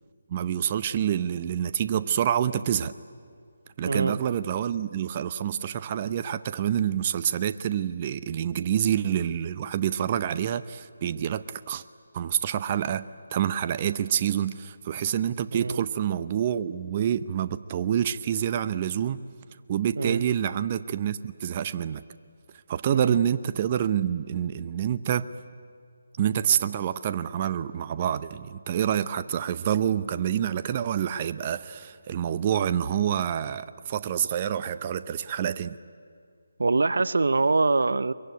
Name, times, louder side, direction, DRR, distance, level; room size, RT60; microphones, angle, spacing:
voice 1, 0.3-2.9 3.8-11.8 12.1-13.1 13.3-19.2 19.7-22.0 22.7-25.3 26.2-35.8, right 9 dB, 30° right, 13 dB, 0.6 m, -27 dB
voice 2, 3.8-4.2 15.5-15.8 20.0-20.2 22.9-23.2 36.6-38.1, right 3 dB, 70° right, 18 dB, 0.7 m, -24 dB
23.0 x 22.5 x 9.7 m, 2.2 s
figure-of-eight pair, 155°, 0 cm